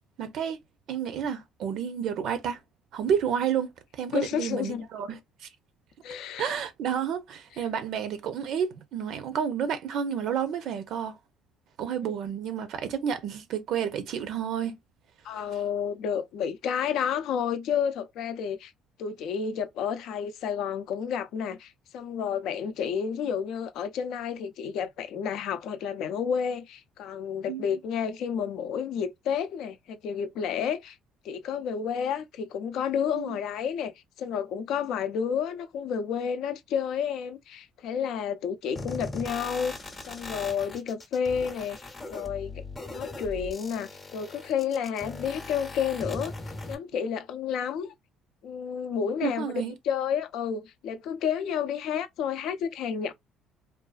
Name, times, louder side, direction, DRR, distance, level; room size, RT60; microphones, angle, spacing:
voice 1, 0.2-0.6 0.9-2.6 2.9-5.5 6.4-11.2 11.8-14.8 15.3-15.4 27.5-27.6 33.1-33.4 49.2-49.7, right 8 dB, 65° right, 0.5 m, -30 dB
voice 2, 4.1-4.9 6.0-6.5 12.0-12.1 15.2-18.7 19.0-31.0 31.2-39.8 40.0-41.8 42.1-42.6 42.9-46.3 46.7-47.9 48.4-49.4 49.8-53.1, left 7 dB, 70° left, 0.4 m, -30 dB
sound 1, 38.8-46.8, left 2 dB, 25° left, 0.7 m, -39 dB
2.5 x 2.3 x 2.3 m
cardioid pair, 95°, 0 cm